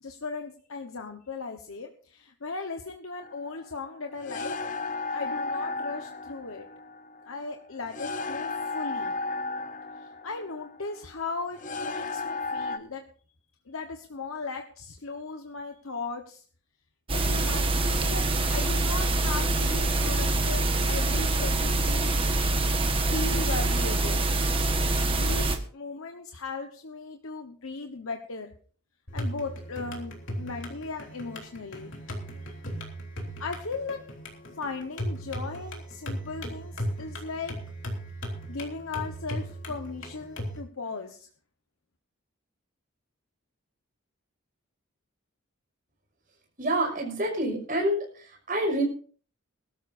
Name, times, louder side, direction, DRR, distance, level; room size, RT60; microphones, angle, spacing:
voice 1, 0.0-4.6 5.1-6.7 7.2-9.1 10.0-13.0 13.7-16.4 17.1-18.3 18.5-22.1 23.1-24.3 25.0-28.5 29.1-31.9 32.5-32.6 33.4-34.0 34.5-37.6 38.5-41.3, left 3 dB, 80° left, 4 dB, 1.2 m, -37 dB
sound 1, 3.2-12.8, left 3 dB, 35° left, 0.8 m, -34 dB
sound 2, 17.1-25.6, right 2 dB, 25° right, 1.4 m, -25 dB
sound 3, 29.1-40.6, equal, 65° left, 3.4 m, -37 dB
voice 2, 46.6-48.8, right 1 dB, 40° right, 1 dB, 6.0 m, -27 dB
21.5 x 13.0 x 2.7 m, 0.43 s
head